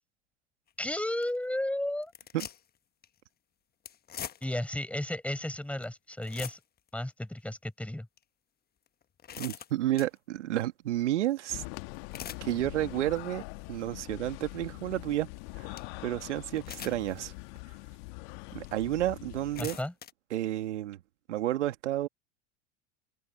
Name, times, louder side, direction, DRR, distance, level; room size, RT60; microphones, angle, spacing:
sound 1, 0.7-0.8 1.2-1.4 2.0-2.8 3.0-3.2 3.9-4.7 5.3-5.4 5.8-5.9 6.1-6.9 7.4-7.5 8.2-8.3 8.9-10.2 11.9-12.5 13.0-13.3 13.8-13.9 15.4-15.5 15.8-15.9 16.6-17.2 17.7-17.8 18.7-18.8 19.3-20.1, left 9 dB, 25° left, 1.2 m, -43 dB
voice 1, 0.8-2.1 4.4-6.6 6.9-8.1 19.6-19.9, left 1 dB, 5° left, 7.0 m, -33 dB
voice 2, 9.4-11.6 12.4-13.4 13.7-15.3 15.6-17.3 18.5-19.8 20.3-21.0 21.3-22.1, right 13 dB, 75° right, 2.0 m, -31 dB
sound 2, 11.5-19.7, left 29 dB, 60° left, 1.6 m, -43 dB
hypercardioid pair, 85°, 36 cm